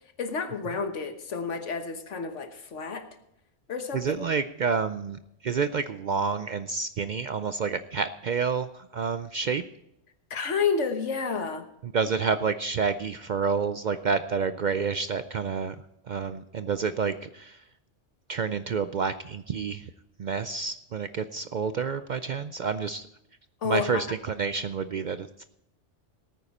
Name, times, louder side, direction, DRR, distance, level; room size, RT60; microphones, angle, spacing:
voice 1, 0.2-3.1 3.7-4.0 10.3-11.7 23.6-24.1, left 5 dB, 80° left, 7 dB, 1.6 m, -30 dB
voice 2, 3.9-9.6 11.9-15.8 16.1-17.6 18.3-19.9 20.2-23.1 23.6-25.5, right 5 dB, 55° right, 11 dB, 0.5 m, -29 dB
18.5 x 9.2 x 4.2 m, 0.80 s
omnidirectional pair, 1.2 m